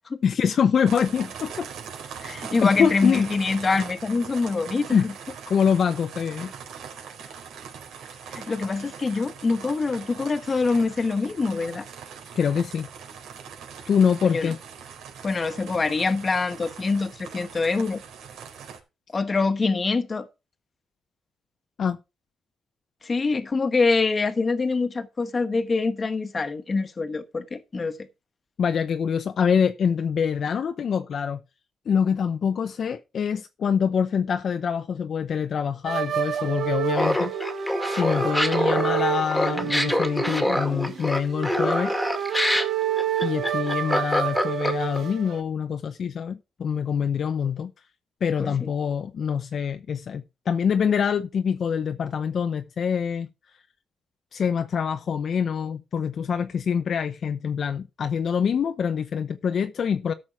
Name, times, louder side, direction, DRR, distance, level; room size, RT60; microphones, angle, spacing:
voice 1, 0.2-1.7 2.1-2.2 2.6-3.3 4.9-5.1 5.5-6.5 12.3-12.9 13.9-14.6 21.8-22.0 28.6-31.4 31.9-37.3 37.8-41.9 43.2-47.7 48.2-53.3 54.3-60.1, left 7 dB, 50° left, 0.6 m, -25 dB
sound 1, 0.9-18.8, right 7 dB, 80° right, 3.9 m, -41 dB
voice 2, 2.2-5.1 8.3-11.9 14.2-14.5 15.2-18.0 19.1-20.3 23.0-28.0 48.4-48.6, left 4 dB, 25° left, 1.2 m, -25 dB
sound 2, 35.8-45.4, right 9 dB, 60° right, 1.7 m, -29 dB
Laughter, 36.9-45.0, left 1 dB, 5° left, 1.9 m, -25 dB
13.0 x 6.3 x 4.7 m
cardioid pair, 140°, 0 cm